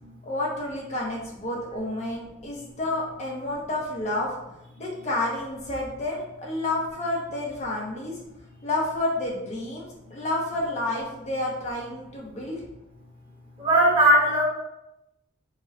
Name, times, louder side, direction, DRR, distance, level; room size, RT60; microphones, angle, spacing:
voice 1, 0.2-4.3 4.8-8.1 8.6-12.6, left 2 dB, 30° left, -3 dB, 0.7 m, -30 dB
voice 2, 13.6-14.4, right 1 dB, 25° right, -4 dB, 1.1 m, -19 dB
4.8 x 2.3 x 4.1 m, 0.89 s
head